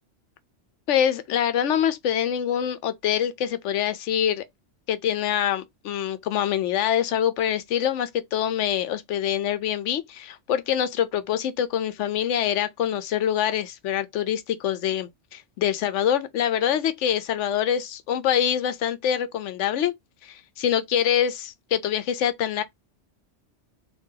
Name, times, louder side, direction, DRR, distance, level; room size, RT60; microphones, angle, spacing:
voice 1, 0.9-4.4 4.9-19.9 20.2-22.6, left 9 dB, 80° left, 0.9 m, -25 dB
3.7 x 2.7 x 2.7 m
omnidirectional pair, 1.2 m